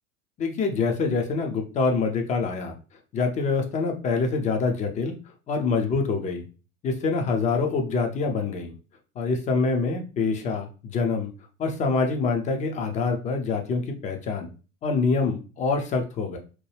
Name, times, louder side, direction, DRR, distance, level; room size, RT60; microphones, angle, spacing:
voice 1, 0.4-2.7 3.1-5.1 5.5-6.5 6.8-8.7 9.2-11.3 11.6-14.5 14.8-16.4, left 4 dB, 20° left, 4 dB, 0.4 m, -25 dB
2.9 x 2.2 x 3.2 m, 0.34 s
figure-of-eight pair, 75°, 44 cm